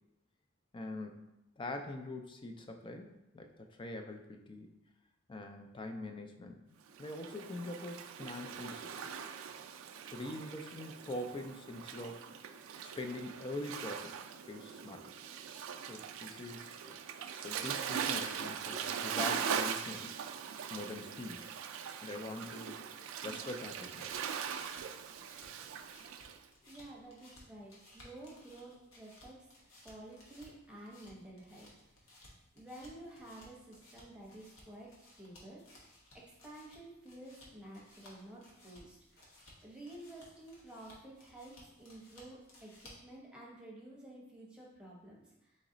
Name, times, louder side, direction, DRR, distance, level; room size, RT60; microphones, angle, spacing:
voice 1, 0.7-4.8 5.3-6.6 7.0-9.1 10.0-12.3 12.8-15.1 15.8-17.0 17.3-20.2 20.7-21.5 22.0-22.8 23.2-24.2, left 2 dB, 25° left, 5 dB, 0.4 m, -44 dB
Waves surf, 6.9-26.4, right 7 dB, 80° right, 0.3 m, -41 dB
sound 1, 23.6-43.2, left 1 dB, 85° left, 1.1 m, -60 dB
voice 2, 26.6-29.5 29.8-32.0 32.5-35.9 36.1-39.3 39.6-45.6, right 1 dB, 5° right, -4 dB, 0.9 m, -51 dB
3.9 x 3.1 x 3.8 m, 0.91 s
head